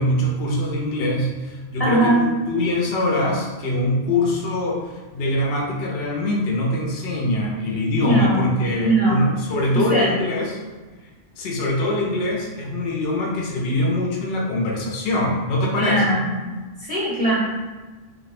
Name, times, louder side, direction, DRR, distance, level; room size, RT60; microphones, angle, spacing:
voice 1, 0.0-10.6 11.4-16.0, left 1 dB, 60° left, -2 dB, 0.8 m, -23 dB
voice 2, 1.8-2.3 8.0-8.5 8.8-9.3 9.7-10.1 15.8-16.5 16.8-17.3, right 1 dB, 35° left, -7 dB, 1.0 m, -20 dB
2.7 x 2.1 x 4.1 m, 1.3 s
omnidirectional pair, 1.3 m